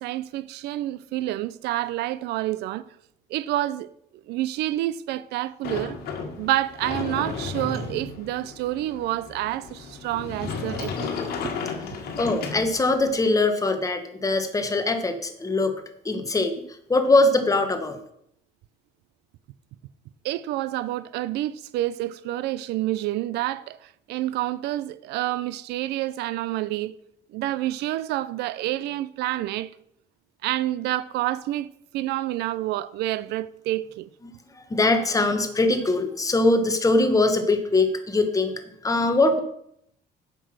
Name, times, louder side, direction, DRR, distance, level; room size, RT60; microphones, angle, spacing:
voice 1, 0.0-2.9 3.3-3.9 4.3-6.0 6.4-11.1 11.4-11.5 20.2-27.0 27.3-29.7 30.4-34.1, right 15 dB, 80° right, 0.5 m, -28 dB
Sliding door, 5.6-13.1, left 5 dB, 65° left, 1.6 m, -33 dB
voice 2, 12.1-16.6 16.9-18.0 34.5-38.5 38.8-39.4, left 2 dB, 20° left, 1.3 m, -22 dB
8.0 x 6.1 x 6.3 m
cardioid pair, 110°, 17 cm